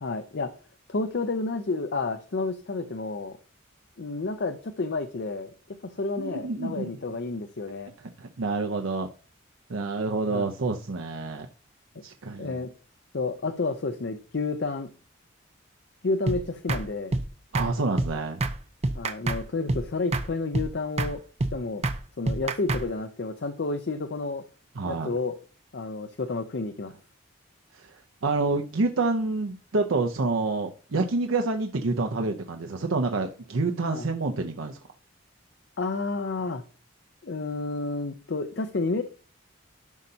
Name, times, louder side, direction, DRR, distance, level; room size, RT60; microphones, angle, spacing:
voice 1, 0.0-0.5 0.9-3.4 4.0-5.5 5.8-7.9 10.3-10.5 12.4-12.7 13.1-14.9 16.0-17.2 18.9-21.2 21.5-21.8 22.2-24.4 24.8-25.3 25.7-26.9 33.9-34.1 35.8-36.6 37.2-39.0, left 3 dB, 55° left, 0.6 m, -30 dB
voice 2, 6.2-6.9 8.2-9.1 9.7-11.5 12.0-12.6 17.5-18.4 24.8-25.1 27.8-27.9 28.2-34.8, right 3 dB, 85° right, 0.7 m, -28 dB
sound 1, 16.3-16.4 16.7-16.8 17.1-17.3 17.5-17.7 18.0-18.1 18.4-18.6 18.8-19.4 19.7-19.8 20.1-20.3 20.5-20.7 21.0-21.1 21.4-21.5 21.8-22.0 22.3-22.8, right 2 dB, 30° right, 0.5 m, -26 dB
12.0 x 5.4 x 2.8 m
head